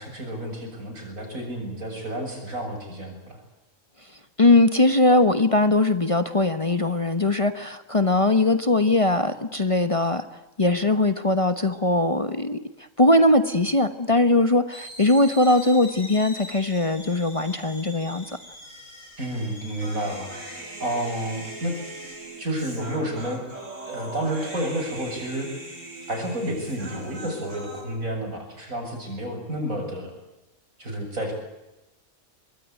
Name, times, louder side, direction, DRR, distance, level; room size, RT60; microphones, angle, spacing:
voice 1, 0.0-3.4 19.2-20.5 20.8-21.7 22.4-23.4 23.9-25.5 26.1-30.1 30.8-31.3, right 1 dB, 85° right, 4 dB, 7.5 m, -30 dB
voice 2, 4.4-10.3 10.6-12.6 13.0-18.2, left 2 dB, 25° left, 10 dB, 1.2 m, -20 dB
sound 1, 14.7-22.2, left 1 dB, 90° left, 6.5 m, -43 dB
Human voice, 19.8-27.8, right 2 dB, 65° right, 6.2 m, -40 dB
24.0 x 22.0 x 9.3 m, 1.0 s
omnidirectional pair, 1.4 m